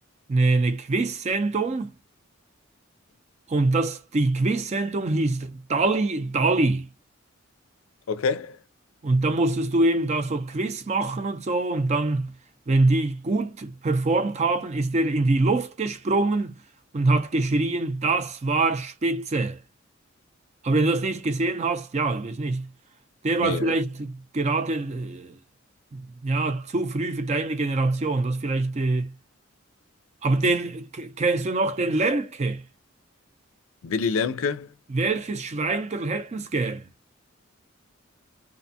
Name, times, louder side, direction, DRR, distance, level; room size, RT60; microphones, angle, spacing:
voice 1, 0.3-1.9 3.5-6.9 9.0-12.3 12.7-16.6 16.9-19.6 20.6-22.7 23.2-25.4 25.9-29.1 30.2-32.6 34.9-36.9, right 2 dB, 35° right, 0.4 m, -24 dB
voice 2, 8.1-8.6 23.4-23.7 33.8-34.7, left 5 dB, 85° left, 0.4 m, -26 dB
2.5 x 2.2 x 2.6 m
head